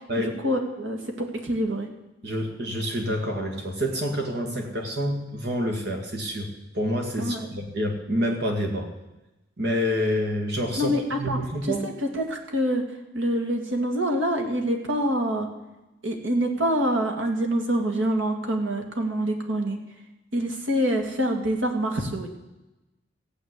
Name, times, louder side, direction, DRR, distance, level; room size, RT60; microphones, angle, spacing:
voice 1, 0.4-1.9 7.2-7.5 10.8-12.8 13.1-15.5 16.0-19.8 20.3-22.3, equal, 85° right, 4 dB, 2.3 m, -26 dB
voice 2, 2.2-6.5 6.7-8.9 9.6-11.9, equal, 60° right, 3 dB, 2.1 m, -27 dB
15.5 x 8.1 x 8.2 m, 1.0 s
head